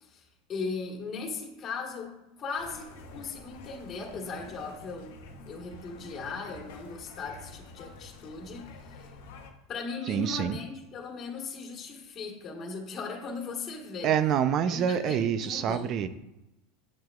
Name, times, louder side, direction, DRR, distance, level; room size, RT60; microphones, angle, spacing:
voice 1, 0.0-5.2 5.5-9.1 9.7-14.1 14.7-15.9, left 4 dB, 35° left, 1 dB, 1.6 m, -38 dB
sound 1, 2.6-9.5, left 3 dB, 75° left, 1.0 m, -48 dB
voice 2, 10.1-10.6 14.0-16.1, right 9 dB, 45° right, 12 dB, 0.5 m, -26 dB
7.5 x 7.4 x 2.4 m, 0.93 s
supercardioid pair, 115°, 0 cm